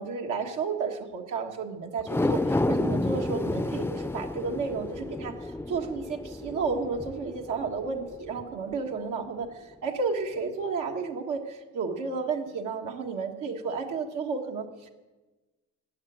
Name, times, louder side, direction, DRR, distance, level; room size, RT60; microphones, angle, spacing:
voice 1, 0.0-14.9, right 4 dB, 85° right, 1 dB, 1.7 m, -32 dB
sound 1, 2.0-8.5 8.9-9.0, left 2 dB, 10° left, 0.4 m, -30 dB
15.0 x 9.0 x 9.3 m, 1.2 s
cardioid pair, 90°, 30 cm